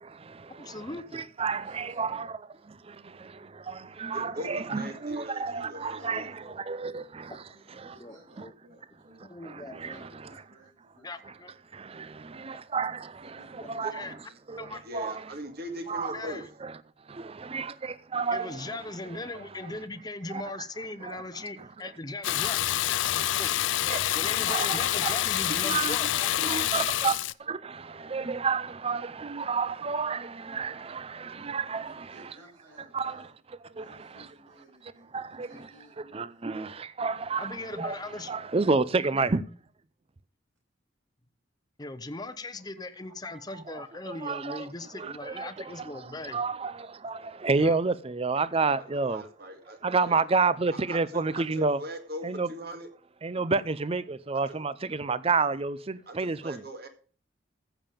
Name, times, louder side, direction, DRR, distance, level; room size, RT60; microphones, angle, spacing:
voice 1, 0.0-0.8 1.1-2.4 2.6-6.3 6.7-7.4 7.8-7.9 9.4-9.9 11.7-14.2 14.5-15.1 15.9-16.2 16.6-16.7 17.1-18.8 20.3-20.4 21.0-21.2 23.0-23.3 23.9-25.2 25.5-32.1 32.9-33.3 33.8-34.3 35.1-35.5 36.1-38.0 38.3-39.4 44.1-44.6 44.9-45.9 46.3-49.2 49.8-51.8 52.2-52.5 53.2-56.6, right 4 dB, 30° right, 0.5 m, -30 dB
voice 2, 0.6-1.2 6.1-6.3 6.9-7.0 8.0-8.5 9.2-10.0 10.9-11.7 13.9-14.2 14.6-14.8 16.1-16.5 18.3-22.6 23.4-23.5 24.1-26.1 37.4-38.3 38.7-38.8 41.8-46.4 47.6-47.8, left 2 dB, 20° left, 0.8 m, -39 dB
voice 3, 1.5-2.4 3.6-3.8 5.8-7.0 7.4-11.1 13.2-14.4 31.8-33.3 33.6-35.9, right 1 dB, 85° right, 7.3 m, -56 dB
voice 4, 4.1-6.3 13.8-13.9 14.8-16.4 48.8-50.2 50.9-52.9 56.1-56.9, equal, 55° right, 2.2 m, -40 dB
Water tap faucet / Bathtub (filling or washing), 22.2-27.3, left 13 dB, 75° left, 0.4 m, -27 dB
14.5 x 7.1 x 5.1 m
head